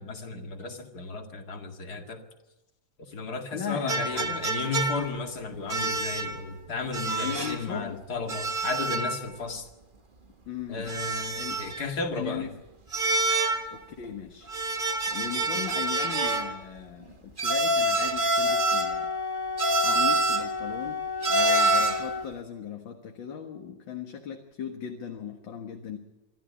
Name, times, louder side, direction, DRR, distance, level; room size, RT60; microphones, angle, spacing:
voice 1, 0.0-2.2 3.1-9.7 10.7-12.5, left 4 dB, 55° left, 4 dB, 2.7 m, -34 dB
voice 2, 3.5-4.5 7.2-8.0 10.5-10.9 11.3-11.6 12.1-12.5 13.7-14.5 15.1-19.1 19.8-26.0, left 8 dB, 80° left, 3 dB, 2.3 m, -37 dB
sound 1, 3.9-5.2 5.7-6.4 6.9-7.6 8.3-9.2 9.5-9.6 10.9-11.8 12.9-13.8 14.5-16.6 17.4-19.0 19.6-20.5 21.2-22.1, right 2 dB, 30° right, 1.6 m, -26 dB
Wind instrument woodwind instrument, 18.4-22.3, left 5 dB, 20° left, 0.6 m, -33 dB
25.0 x 13.5 x 8.5 m, 1.1 s
omnidirectional pair, 2.1 m